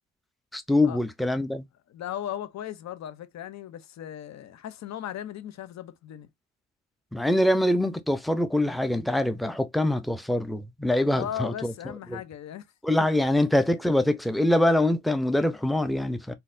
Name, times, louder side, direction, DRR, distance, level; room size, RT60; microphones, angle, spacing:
voice 1, 0.5-1.6 7.1-11.7 12.1-12.2 12.8-16.3, left 1 dB, ahead, 0.5 m, -24 dB
voice 2, 1.9-6.3 11.1-12.6, left 10 dB, 65° left, 0.7 m, -37 dB
3.9 x 2.7 x 2.6 m
cardioid pair, 90°, 30 cm